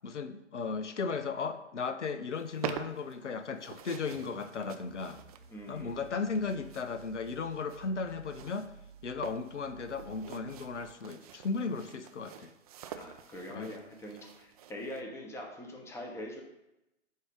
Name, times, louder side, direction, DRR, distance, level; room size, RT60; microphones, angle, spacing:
voice 1, 0.0-5.2 5.7-8.7 9.0-12.5 13.5-13.8, left 4 dB, 85° left, 10 dB, 0.7 m, -36 dB
sound 1, 2.3-15.0, right 9 dB, 35° right, 0.4 m, -47 dB
sound 2, 3.9-10.9, right 7 dB, 75° right, 0.8 m, -54 dB
voice 2, 5.5-6.0 13.0-16.4, left 1 dB, 5° left, 1 dB, 0.9 m, -43 dB
8.1 x 2.8 x 5.0 m, 0.91 s
figure-of-eight pair, 120°, 35 cm